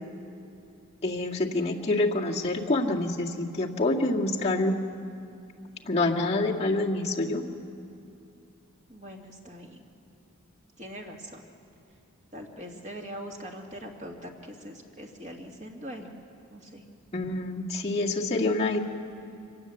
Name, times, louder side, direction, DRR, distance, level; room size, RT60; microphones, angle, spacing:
voice 1, 1.0-4.7 5.8-7.4 17.1-18.8, left 2 dB, 30° left, -3 dB, 2.0 m, -27 dB
voice 2, 8.9-9.9 10.8-11.4 12.3-16.1 16.5-16.8, equal, 35° right, 1 dB, 2.4 m, -42 dB
25.0 x 18.5 x 8.0 m, 2.7 s
head